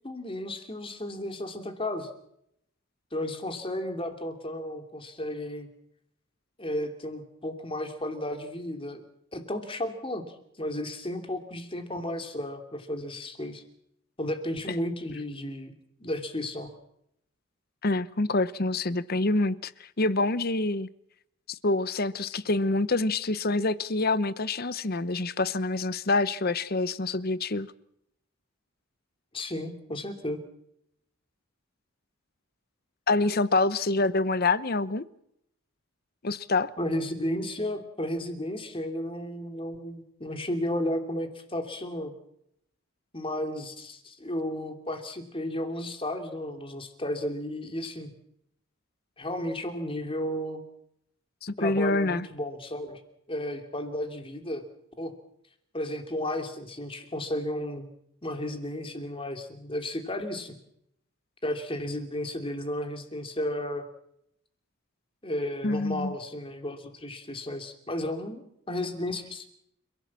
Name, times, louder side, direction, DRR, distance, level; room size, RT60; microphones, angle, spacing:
voice 1, 0.0-2.1 3.1-5.7 6.6-9.0 9.3-10.2 10.6-13.6 14.2-15.7 16.0-16.7 29.3-30.4 36.8-42.1 43.1-48.1 49.2-50.6 51.6-53.0 53.3-54.6 55.0-55.1 55.7-57.9 58.2-60.5 61.4-63.8 65.2-69.5, left 1 dB, 25° left, 2.8 m, -33 dB
voice 2, 17.8-20.9 21.5-27.7 33.1-35.0 36.2-36.7 51.4-52.3 65.6-66.1, left 2 dB, 45° left, 0.9 m, -26 dB
29.5 x 16.5 x 7.5 m
head